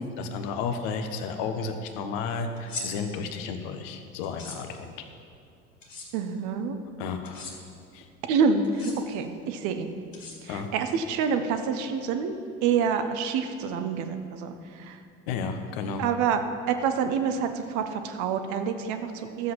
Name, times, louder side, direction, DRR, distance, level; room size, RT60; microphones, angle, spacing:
voice 1, 0.0-4.9 7.0-7.5 7.9-8.1 10.5-10.7 15.3-16.1, left 5 dB, 55° left, 7 dB, 1.2 m, -32 dB
sound 1, 2.6-2.9 4.2-4.6 5.8-6.1 7.2-7.5 8.6-8.9 10.1-10.7, left 3 dB, 80° left, 2.0 m, -38 dB
voice 2, 6.1-6.8 8.3-9.9 10.4-15.0 16.0-16.4 16.7-19.5, right 6 dB, 50° right, 8 dB, 1.1 m, -27 dB
13.0 x 7.7 x 5.8 m, 2.5 s
figure-of-eight pair, 65°, 38 cm